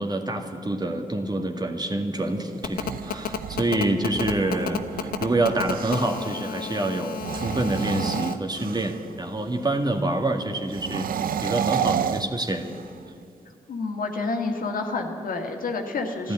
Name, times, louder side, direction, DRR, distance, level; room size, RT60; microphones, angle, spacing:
voice 1, 0.0-11.1 11.4-12.7 16.2-16.3, right 2 dB, 25° right, 4 dB, 2.1 m, -27 dB
Telephone, 2.6-8.3, left 8 dB, 85° left, 0.7 m, -31 dB
sound 1, 2.6-6.3 7.1-9.1 10.7-13.0, right 8 dB, 75° right, 0.5 m, -31 dB
voice 2, 13.7-16.3, left 3 dB, 70° left, 3 dB, 1.9 m, -29 dB
12.5 x 12.5 x 9.1 m, 2.5 s
supercardioid pair, 45°, 15 cm